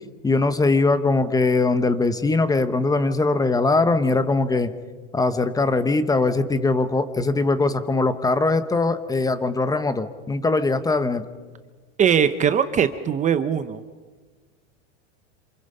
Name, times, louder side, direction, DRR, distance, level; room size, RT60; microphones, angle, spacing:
voice 1, 0.2-4.7 5.1-11.3, left 3 dB, 10° left, 11 dB, 0.8 m, -21 dB
voice 2, 12.0-13.8, right 8 dB, 20° right, 11 dB, 0.7 m, -20 dB
27.5 x 27.0 x 5.5 m, 1.4 s
supercardioid pair, 150°, 36 cm